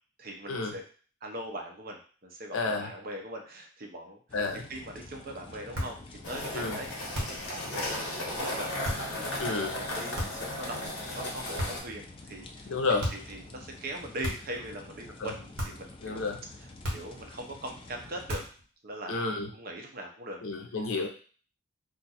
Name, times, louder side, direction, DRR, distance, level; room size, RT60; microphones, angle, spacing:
voice 1, 0.2-0.8 1.2-4.2 4.7-6.9 7.2-16.2 16.9-18.4 18.8-20.4, right 1 dB, 45° right, 2 dB, 0.6 m, -41 dB
voice 2, 2.5-2.9 4.3-4.7 6.5-6.8 9.4-9.7 12.6-13.1 15.2-15.3 16.0-16.4 19.1-19.5 20.4-21.1, left 3 dB, 70° left, 3 dB, 0.6 m, -30 dB
sound 1, 4.3-18.5, left 2 dB, 25° left, 0.3 m, -49 dB
sound 2, 5.7-6.0 7.1-7.5 8.8-9.1 10.1-10.5 11.6-12.0 13.0-13.3 14.2-14.6 15.6-15.9 16.8-17.2 18.3-18.6, equal, 60° right, 1.2 m, -35 dB
sound 3, 6.2-11.8, left 1 dB, 55° left, 1.0 m, -35 dB
2.5 x 2.3 x 4.1 m, 0.41 s
head